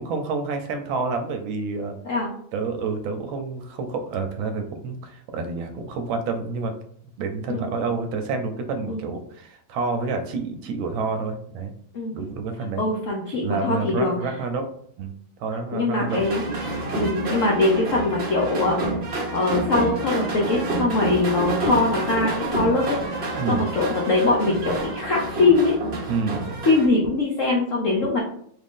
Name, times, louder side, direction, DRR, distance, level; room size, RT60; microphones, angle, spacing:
voice 1, 0.0-1.9 2.5-6.7 7.2-11.7 12.1-12.8 13.4-14.6 15.0-15.1 15.4-16.2 23.4-23.6 26.1-26.4, right 4 dB, 80° right, 6 dB, 1.3 m, -28 dB
voice 2, 12.8-14.3 15.7-16.4 16.9-18.8 19.3-23.0 23.5-25.8 26.6-28.2, left 3 dB, 80° left, -2 dB, 0.7 m, -22 dB
sound 1, 16.1-26.9, right 2 dB, 50° right, 0.7 m, -28 dB
3.7 x 2.5 x 3.6 m, 0.66 s
omnidirectional pair, 2.2 m